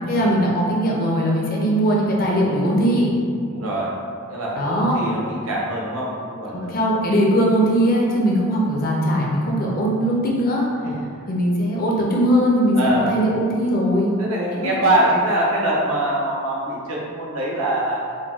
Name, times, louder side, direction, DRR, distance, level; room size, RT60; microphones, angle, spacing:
voice 1, 0.1-3.2 4.5-5.0 6.5-10.7 11.3-12.8 13.1-14.2, equal, 40° left, -2 dB, 0.5 m, -20 dB
voice 2, 3.5-3.9 4.3-6.8 8.6-8.8 10.8-11.1 12.7-13.1 14.2-18.0, right 1 dB, 70° right, -4 dB, 0.7 m, -23 dB
3.9 x 2.1 x 2.3 m, 2.3 s
head